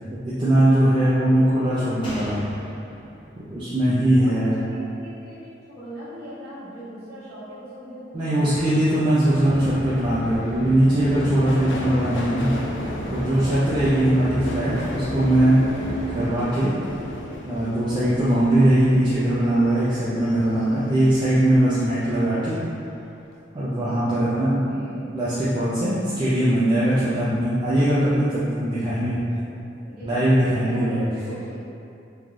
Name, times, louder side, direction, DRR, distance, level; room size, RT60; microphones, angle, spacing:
voice 1, 0.2-2.4 3.5-4.6 8.1-12.6 13.1-15.6 16.1-16.7 17.5-22.6 23.5-24.7 25.1-29.2 30.0-31.1, right 1 dB, 25° right, -11 dB, 0.3 m, -20 dB
Slam, 2.0-5.5 5.8-5.9, equal, 25° left, 0.6 m, -41 dB
voice 2, 4.2-8.7 13.9-14.4 16.2-16.4 18.5-18.8 24.3-25.1 29.4-29.6 29.8-31.6, equal, 50° right, -14 dB, 1.4 m, -40 dB
sound 1, 9.3-16.3, equal, 50° left, 0.9 m, -33 dB
Subway metro underground, 11.1-21.9 22.2-22.9 23.2-23.3, left 1 dB, 75° left, 0.3 m, -35 dB
3.2 x 2.5 x 2.3 m, 2.6 s
head